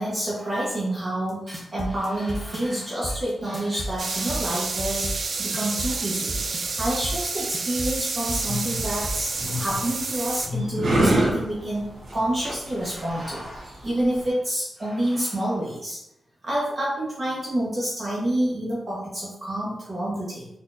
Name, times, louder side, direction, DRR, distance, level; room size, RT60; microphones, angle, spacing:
voice 1, 0.0-5.1 5.4-6.4 6.8-16.0 16.4-20.5, right 1 dB, 30° right, -7 dB, 1.1 m, -28 dB
sound 1, 1.3-9.2, equal, 15° right, 0.6 m, -33 dB
sound 2, 4.0-10.5, right 4 dB, 55° right, 0.4 m, -30 dB
sound 3, 8.2-14.3, right 1 dB, 75° right, 0.8 m, -27 dB
4.1 x 2.7 x 2.5 m, 0.83 s
wide cardioid pair, 100°, 0 cm